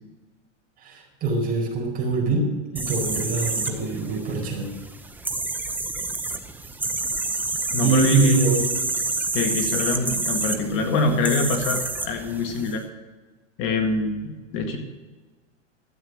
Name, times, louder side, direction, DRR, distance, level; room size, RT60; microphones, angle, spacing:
voice 1, 0.8-4.7 7.8-8.7, right 3 dB, 25° right, 0 dB, 4.6 m, -23 dB
sound 1, 2.8-12.8, right 3 dB, 5° right, 0.7 m, -28 dB
voice 2, 7.7-8.4 9.3-12.8 13.6-14.8, left 3 dB, 35° left, 4 dB, 1.8 m, -25 dB
12.5 x 8.9 x 6.4 m, 1.3 s
hypercardioid pair, 135°, 36 cm